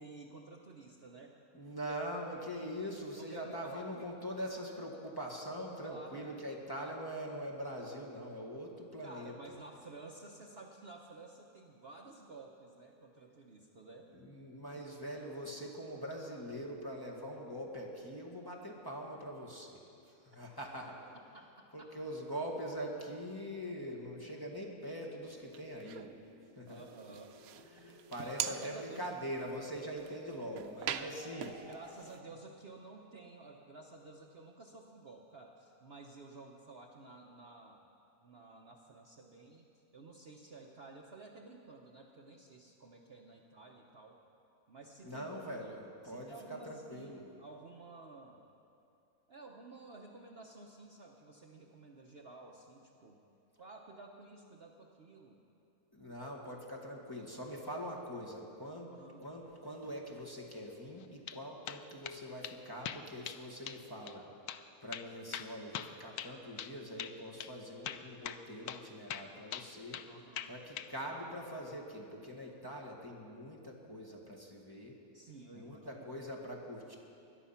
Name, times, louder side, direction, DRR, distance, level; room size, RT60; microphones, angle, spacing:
voice 1, 0.0-1.4 3.3-4.1 5.8-6.3 9.0-14.1 14.7-14.8 21.3-21.9 26.7-27.4 28.2-29.0 31.7-37.9 38.2-39.7 39.9-44.2 44.7-45.3 45.6-45.7 46.0-48.4 49.3-53.2 53.6-55.4 58.9-59.2 70.1-70.6 75.1-76.1, right 3 dB, 45° right, 1 dB, 1.1 m, -53 dB
voice 2, 1.5-9.4 14.1-21.1 21.7-26.1 26.6-26.8 27.7-31.7 45.0-47.2 55.9-64.3 64.8-70.0 70.5-75.0 75.5-77.0, equal, 15° left, -2 dB, 1.8 m, -43 dB
sound 1, 21.2-32.4, left 2 dB, 70° left, 2.6 m, -58 dB
sound 2, 25.3-26.1 26.7-32.2, right 9 dB, 75° right, 1.1 m, -43 dB
sound 3, 61.0-61.4 61.7-62.2 62.4-62.6 62.8-63.4 63.7-63.8 64.1-64.2 64.5-64.6 64.9-66.7 67.0-67.1 67.4-67.5 67.8-68.4 68.7-68.8 69.1-70.1 70.4-70.9, left 10 dB, 85° left, 1.1 m, -42 dB
21.5 x 11.0 x 5.8 m, 2.6 s
omnidirectional pair, 1.6 m